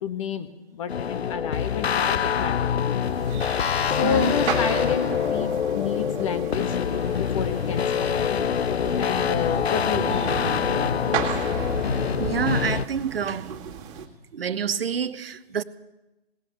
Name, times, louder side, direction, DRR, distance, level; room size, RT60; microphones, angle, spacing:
voice 1, 0.0-3.0 3.9-6.8 7.2-8.4 9.0-11.3, left 7 dB, 30° left, 1.0 m, -30 dB
sound 1, 0.9-12.9, left 8 dB, 85° left, 0.6 m, -25 dB
sound 2, 3.0-14.1, right 6 dB, 30° right, 2.0 m, -34 dB
voice 2, 4.0-4.4 12.2-13.6 14.0-14.1 14.3-15.6, right 7 dB, 70° right, 0.8 m, -28 dB
17.5 x 7.7 x 9.8 m
figure-of-eight pair, 140°, 31 cm